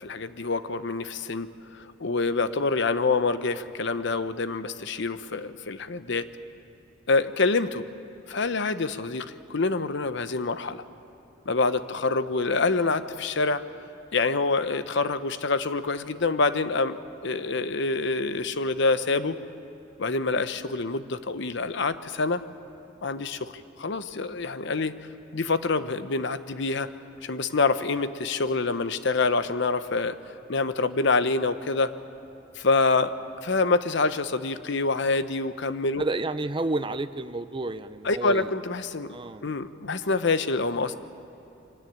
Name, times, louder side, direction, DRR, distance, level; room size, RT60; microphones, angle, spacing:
voice 1, 0.0-1.5 1.8-6.3 7.1-7.9 8.3-10.8 11.5-13.6 14.1-17.0 17.2-19.4 20.0-22.4 23.0-23.5 23.8-24.9 25.3-26.9 27.2-30.2 30.5-31.9 32.6-33.1 33.4-36.0 38.0-40.9, left 3 dB, 65° left, 12 dB, 0.9 m, -26 dB
voice 2, 36.0-38.5 39.1-39.4, right 2 dB, 25° right, 11 dB, 0.7 m, -30 dB
24.5 x 17.0 x 9.4 m, 3.0 s
head